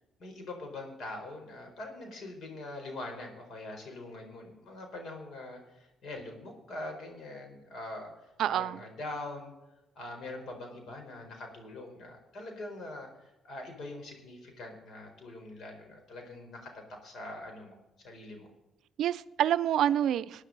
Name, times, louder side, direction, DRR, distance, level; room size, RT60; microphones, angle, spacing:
voice 1, 0.2-8.1 8.5-9.5 9.9-18.5, left 2 dB, 65° left, 3 dB, 4.3 m, -43 dB
voice 2, 8.4-8.8 19.0-20.4, right 11 dB, 75° right, 16 dB, 0.5 m, -27 dB
19.0 x 9.8 x 4.0 m, 1.0 s
cardioid pair, 90°, 0 cm